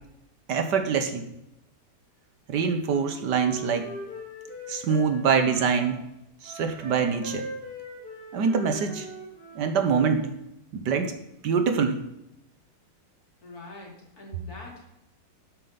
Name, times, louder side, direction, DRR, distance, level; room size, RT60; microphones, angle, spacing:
voice 1, 0.5-1.3 2.5-3.9 4.7-6.0 6.4-7.5 8.3-9.1 9.5-10.3 10.7-11.2 11.4-12.0, right 6 dB, 70° right, 7 dB, 1.6 m, -24 dB
Wind instrument woodwind instrument, 2.9-5.9 6.4-9.7, equal, 30° left, 3.5 m, -41 dB
voice 2, 13.4-14.9, left 2 dB, 55° left, -1 dB, 3.1 m, -44 dB
12.0 x 7.8 x 4.1 m, 0.84 s
omnidirectional pair, 2.0 m